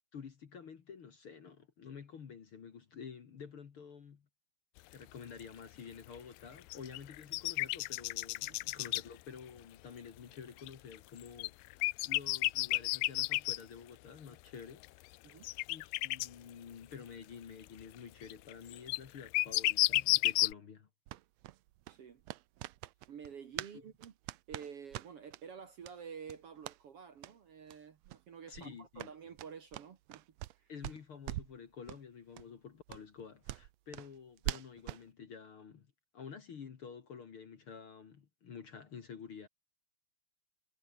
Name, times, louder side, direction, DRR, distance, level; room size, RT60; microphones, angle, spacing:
voice 1, 0.1-4.3 4.9-14.9 15.7-20.9 28.5-29.1 30.7-35.9 36.1-39.5, left 6 dB, 45° left, 2.2 m, -50 dB
sound 1, 4.8-4.9 5.4-5.5 6.6-9.0 10.7-13.6 14.8-14.9 15.4-16.3 18.3-20.5, left 21 dB, 85° left, 2.3 m, -31 dB
sound 2, 21.1-23.8 24.0-25.4 25.8-26.0 26.2-26.8 27.2-27.3 27.7-27.8 28.0-28.2 28.5-30.6 30.8-31.6 31.9-32.0 32.3-32.4 32.9-35.1, right 16 dB, 85° right, 1.5 m, -43 dB
voice 2, 21.9-22.2 23.1-24.1 24.5-30.2 30.5-30.7, right 7 dB, 50° right, 2.1 m, -50 dB
omnidirectional pair, 3.9 m